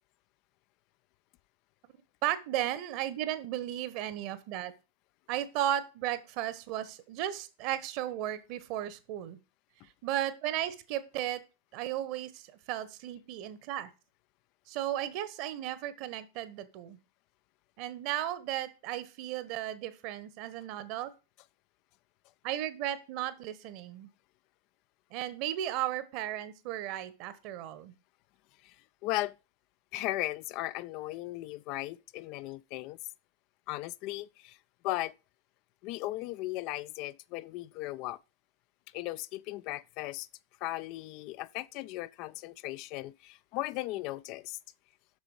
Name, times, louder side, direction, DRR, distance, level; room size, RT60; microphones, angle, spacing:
voice 1, 2.2-4.7 5.3-9.4 10.0-11.4 11.7-13.9 14.7-17.0 17.8-21.1 22.4-24.1 25.1-27.9, right 12 dB, 45° right, 1.2 m, -35 dB
voice 2, 29.0-29.3 29.9-33.0 33.7-34.6 34.8-35.1 35.8-38.2 38.9-40.3 40.6-44.6, left 17 dB, 40° left, 0.4 m, -37 dB
7.4 x 6.6 x 5.0 m
figure-of-eight pair, 90°, 0 cm